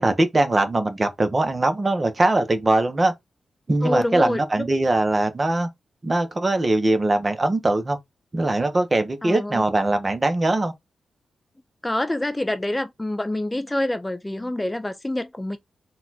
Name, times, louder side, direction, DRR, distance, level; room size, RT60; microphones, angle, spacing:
voice 1, 0.0-3.1 3.7-5.7 6.0-8.0 8.3-10.7, right 2 dB, 30° right, 0.9 m, -21 dB
voice 2, 3.8-4.7 9.2-9.7 11.8-15.6, left 1 dB, 15° left, 0.4 m, -26 dB
4.2 x 2.4 x 4.1 m
cardioid pair, 90°, 0 cm